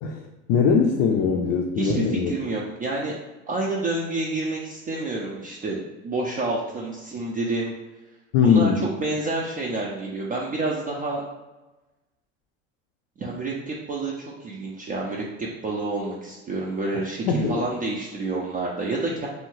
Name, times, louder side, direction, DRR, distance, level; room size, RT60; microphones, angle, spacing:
voice 1, 0.0-2.3 8.3-8.9 17.3-17.7, left 6 dB, 60° left, 1 dB, 0.5 m, -21 dB
voice 2, 1.8-3.2 3.5-7.7 8.4-8.7 9.0-11.2 13.2-19.3, right 2 dB, 25° right, -3 dB, 0.4 m, -28 dB
2.7 x 2.2 x 3.0 m, 1.1 s
hypercardioid pair, 90°, 36 cm